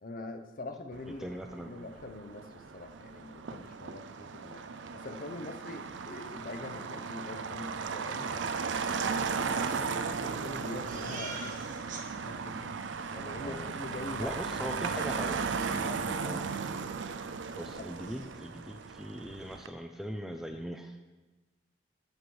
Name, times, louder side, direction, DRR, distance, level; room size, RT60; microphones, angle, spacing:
voice 1, 0.0-4.6 4.9-8.3 8.8-11.7 12.3-12.7 13.1-14.3 15.8-16.1 17.8-17.9, left 2 dB, 50° left, 7 dB, 0.8 m, -44 dB
Motor vehicle (road), 0.9-19.7, right 5 dB, 80° right, 0.5 m, -36 dB
voice 2, 1.2-1.7 13.4-13.7 14.2-15.4 16.2-16.4 17.6-21.0, equal, ahead, 5 dB, 0.5 m, -40 dB
Crying sobbing, 10.9-12.0 12.4-12.5 12.8-13.2 15.0-15.1 15.5-16.3 16.7-16.9 17.2-17.3 17.6-18.3, right 4 dB, 45° right, 1.3 m, -46 dB
7.9 x 6.1 x 7.1 m, 1.2 s
head